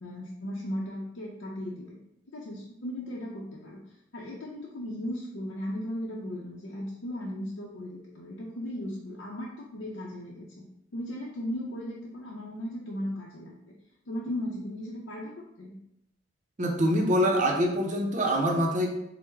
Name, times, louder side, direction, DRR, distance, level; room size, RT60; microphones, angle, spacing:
voice 1, 0.0-2.0 2.3-3.8 4.1-10.7 10.9-13.6 14.1-15.3 15.6-15.8, equal, 90° left, -4 dB, 0.6 m, -36 dB
voice 2, 16.6-19.0, equal, 40° right, 2 dB, 0.6 m, -25 dB
4.5 x 2.0 x 3.3 m, 0.78 s
head